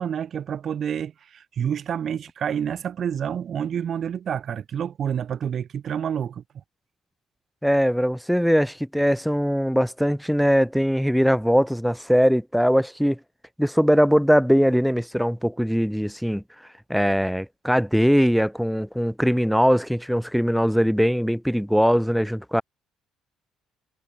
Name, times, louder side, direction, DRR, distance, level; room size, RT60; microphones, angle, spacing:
voice 1, 0.0-6.4, right 8 dB, 45° right, 0.7 m, -28 dB
voice 2, 7.6-13.2 13.6-16.4 16.9-22.6, equal, ahead, 0.3 m, -21 dB
cardioid pair, 120°, 0 cm